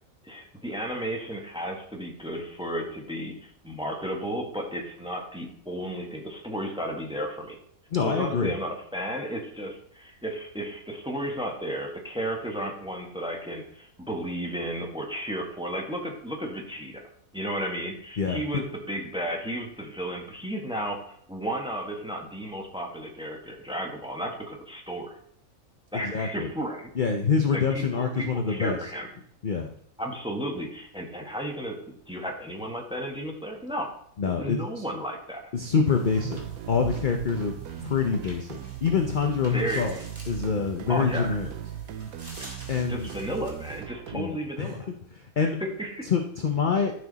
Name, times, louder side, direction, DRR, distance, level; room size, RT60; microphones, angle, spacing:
voice 1, 0.2-7.6 8.0-17.0 17.3-25.1 25.9-26.9 27.5-29.1 30.0-31.7 32.1-33.9 34.4-35.4 39.5-40.1 40.9-41.4 42.9-44.9 45.4-45.5 45.8-46.1, equal, 5° right, 1 dB, 1.3 m, -33 dB
voice 2, 7.9-8.5 18.2-18.4 26.0-26.5 27.0-28.8 29.4-29.7 34.2-34.8 35.5-36.4 36.7-40.0 40.3-41.5 42.7-43.1 44.1-44.8 45.4-45.6 46.1-46.9, left 5 dB, 45° left, 4 dB, 0.7 m, -26 dB
sound 1, 35.8-43.8, right 2 dB, 25° right, 2.1 m, -46 dB
sound 2, 36.1-44.2, right 10 dB, 80° right, 1.1 m, -39 dB
12.0 x 6.2 x 4.1 m, 0.64 s
omnidirectional pair, 1.5 m